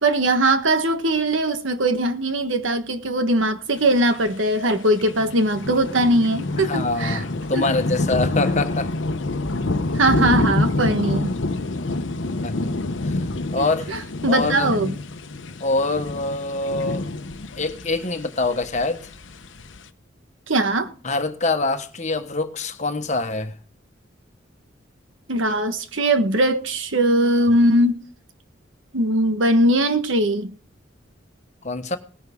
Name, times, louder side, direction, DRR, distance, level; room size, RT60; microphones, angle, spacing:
voice 1, 0.0-7.2 7.5-7.7 9.9-11.3 13.6-14.9 20.5-20.9 25.3-28.0 28.9-30.5, right 1 dB, 85° right, 1.4 m, -20 dB
sound 1, 3.8-4.4 4.7-4.8 5.0-19.8, left 2 dB, 75° left, 0.9 m, -27 dB
voice 2, 6.6-8.9 12.4-12.7 13.0-13.1 13.5-13.9 14.3-14.7 15.6-17.0 17.6-19.1 21.0-23.6 31.6-32.0, left 3 dB, 40° left, 1.3 m, -24 dB
18.0 x 10.5 x 3.7 m
head